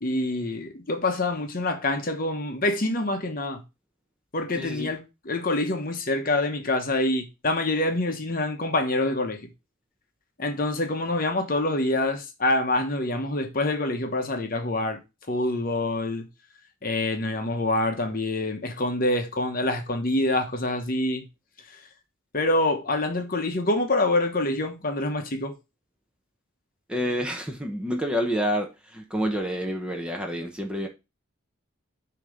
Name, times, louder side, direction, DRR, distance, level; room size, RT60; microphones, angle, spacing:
voice 1, 0.0-3.6 4.3-9.4 10.4-15.0 15.3-16.2 16.8-21.2 22.3-25.5, left 2 dB, 40° left, 0.9 m, -26 dB
voice 2, 4.5-4.9 26.9-30.9, equal, 5° right, 0.9 m, -28 dB
6.7 x 2.9 x 5.0 m
head